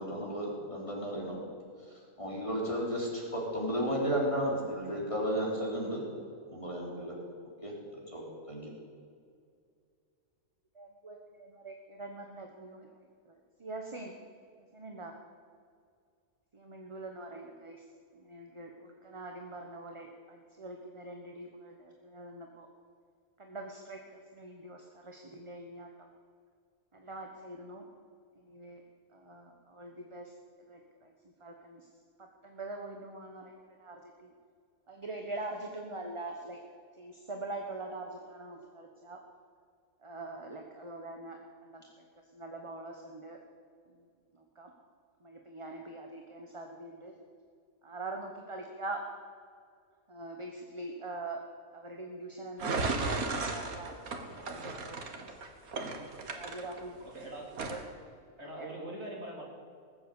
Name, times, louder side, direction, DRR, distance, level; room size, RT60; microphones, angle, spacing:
voice 1, 0.0-1.4 1.9-6.0 6.5-7.2 7.6-7.7 8.1-8.7, equal, 20° left, -3 dB, 3.6 m, -33 dB
voice 2, 10.7-12.9 13.2-14.1 14.7-15.1 16.5-17.8 18.1-22.7 23.4-25.9 26.9-27.8 28.3-28.8 29.1-30.3 30.7-31.9 32.2-34.3 34.9-36.6 36.9-39.2 40.0-42.0 42.3-43.4 43.9-44.1 44.3-44.7 45.2-47.1 47.8-49.0 50.1-51.4 51.7-55.3 56.3-57.1 57.6-57.8 58.5-58.7, right 2 dB, 25° right, 2 dB, 1.1 m, -44 dB
sound 1, 52.6-57.2 57.5-57.8, right 3 dB, 80° right, 1.9 m, -35 dB
voice 3, 57.1-57.5 58.4-59.4, right 1 dB, 50° right, -2 dB, 3.3 m, -42 dB
19.0 x 7.9 x 8.3 m, 2.2 s
omnidirectional pair, 1.5 m